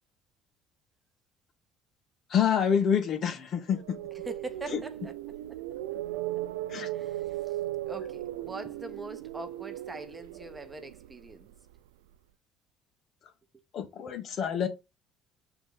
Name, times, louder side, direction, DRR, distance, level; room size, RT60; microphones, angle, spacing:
voice 1, 2.3-4.0 4.7-4.8 6.7-6.9 13.7-14.7, left 8 dB, 55° left, 1.8 m, -27 dB
sound 1, 3.7-11.8, right 14 dB, 85° right, 0.3 m, -37 dB
voice 2, 4.2-5.6 6.9-7.6 7.8-11.5 13.5-13.6, right 2 dB, 20° right, 1.2 m, -43 dB
5.8 x 3.9 x 4.9 m
hypercardioid pair, 70°, 0 cm